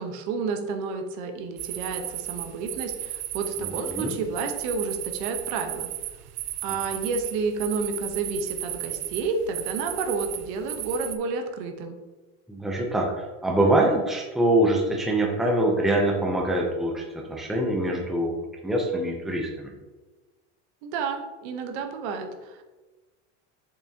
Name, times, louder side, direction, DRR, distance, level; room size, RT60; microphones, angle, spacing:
voice 1, 0.0-5.9 6.6-12.0 20.8-22.6, right 4 dB, 65° right, 5 dB, 1.1 m, -30 dB
sound 1, 1.6-11.2, right 14 dB, 50° right, 0.6 m, -34 dB
voice 2, 3.6-4.2 12.5-18.4 18.6-19.7, right 1 dB, ahead, 0 dB, 0.7 m, -24 dB
7.1 x 6.0 x 2.9 m, 1.2 s
cardioid pair, 150°, 34 cm